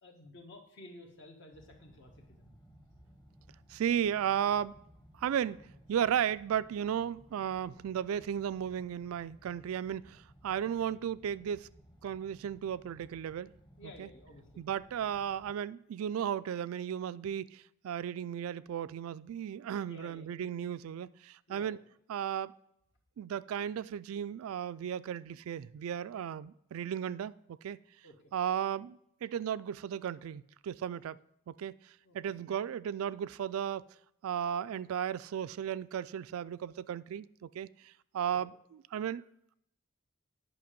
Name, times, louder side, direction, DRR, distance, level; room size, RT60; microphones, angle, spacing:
voice 1, 0.0-2.6 13.8-14.6 19.8-20.3 21.5-21.8 28.0-28.2 32.0-32.2 38.3-38.4, left 1 dB, 60° left, 1.5 m, -53 dB
sound 1, 1.5-15.5, equal, 20° left, 1.0 m, -59 dB
voice 2, 3.7-4.8 5.1-11.7 12.0-13.5 14.0-14.1 14.6-21.8 22.1-22.5 23.2-27.8 28.3-31.2 31.5-31.8 32.1-33.9 34.2-38.5 38.9-39.2, right 9 dB, 85° right, 0.3 m, -35 dB
9.4 x 5.7 x 5.2 m
head